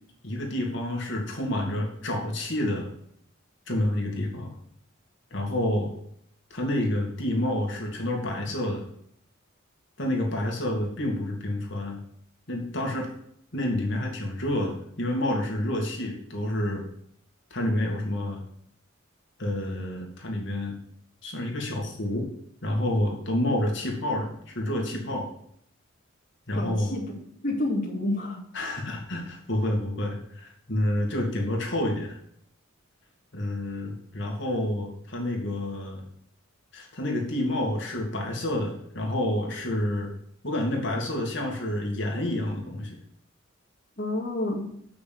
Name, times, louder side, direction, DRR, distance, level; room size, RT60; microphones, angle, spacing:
voice 1, 0.2-2.9 3.7-4.5 5.3-5.9 6.5-8.8 10.0-12.0 12.5-13.1 13.5-16.8 17.5-18.4 19.4-20.8 21.2-22.3 22.6-25.3 26.5-26.9 28.5-32.2 33.3-36.1 36.7-40.1 40.4-43.0, left 1 dB, 60° left, 0 dB, 2.3 m, -29 dB
voice 2, 26.5-27.0 27.4-28.4 44.0-44.6, left 1 dB, 45° left, -4 dB, 2.2 m, -28 dB
7.4 x 6.0 x 7.6 m, 0.69 s
head